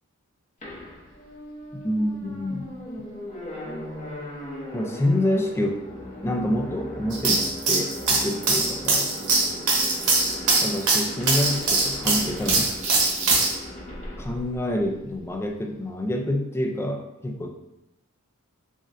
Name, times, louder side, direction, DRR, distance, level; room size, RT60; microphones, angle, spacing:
sound 1, 0.6-15.3, equal, 35° left, 0.8 m, -38 dB
voice 1, 1.8-2.8 4.7-5.8 6.2-9.1 10.6-12.7 14.2-17.5, left 1 dB, 10° left, 3 dB, 0.3 m, -27 dB
sound 2, 7.1-13.5, right 3 dB, 70° right, 0.9 m, -22 dB
6.1 x 2.1 x 2.5 m, 0.88 s
head